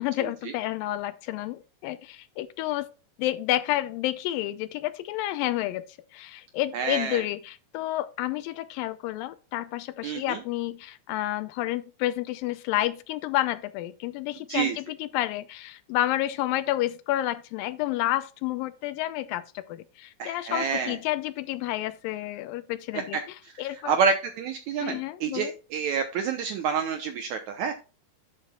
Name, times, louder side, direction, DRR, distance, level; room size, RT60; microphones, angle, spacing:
voice 1, 0.0-2.9 3.2-5.8 6.1-24.0 24.8-25.5, left 15 dB, 80° left, 2.2 m, -30 dB
voice 2, 6.7-7.2 10.0-10.4 14.5-14.8 20.2-21.0 22.9-23.0 23.9-27.7, right 6 dB, 75° right, 1.7 m, -28 dB
11.5 x 7.3 x 2.3 m
omnidirectional pair, 4.3 m